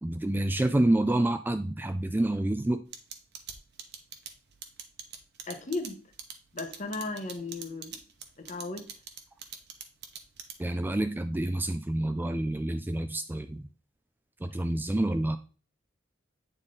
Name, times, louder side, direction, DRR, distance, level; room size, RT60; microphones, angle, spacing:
voice 1, 0.0-2.8 10.6-13.6 14.4-15.4, right 1 dB, 10° right, 0.3 m, -28 dB
sound 1, 2.9-10.8, right 8 dB, 60° right, 1.0 m, -42 dB
voice 2, 5.5-6.0 6.5-8.0 8.4-8.9, left 3 dB, 40° left, 1.0 m, -35 dB
8.9 x 4.0 x 3.7 m
head